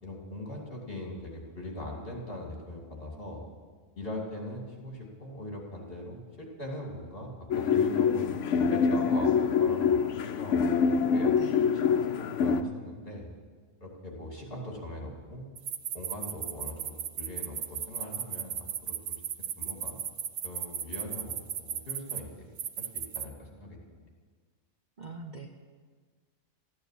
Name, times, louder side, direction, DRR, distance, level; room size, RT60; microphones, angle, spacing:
voice 1, 0.0-3.4 3.9-8.3 8.7-10.6 11.0-11.3 11.7-13.3 13.8-15.5 15.9-19.2 19.6-20.0 20.4-22.5 22.8-24.1, left 1 dB, 45° left, -1 dB, 3.0 m, -41 dB
sound 1, 7.5-12.6, left 6 dB, 70° left, 1.0 m, -25 dB
sound 2, 15.6-22.2 22.6-23.3, right 9 dB, 70° right, 1.1 m, -35 dB
voice 2, 25.0-25.5, right 3 dB, 40° right, 3 dB, 0.9 m, -42 dB
14.0 x 9.5 x 8.4 m, 1.5 s
omnidirectional pair, 1.4 m